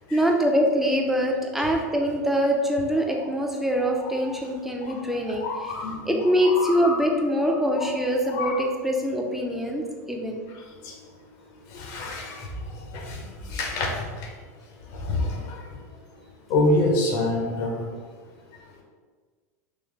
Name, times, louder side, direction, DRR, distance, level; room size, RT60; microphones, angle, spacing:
voice 1, 0.1-5.7 6.1-10.5, equal, 5° right, 1 dB, 0.6 m, -24 dB
voice 2, 5.3-6.2 6.4-7.0 7.8-7.9 8.2-8.6 10.8-10.9 11.7-12.5 12.9-14.3 14.9-15.6 16.5-17.9, left 2 dB, 55° left, 1 dB, 0.9 m, -27 dB
3.9 x 3.1 x 3.2 m, 1.5 s
hypercardioid pair, 95°, 9 cm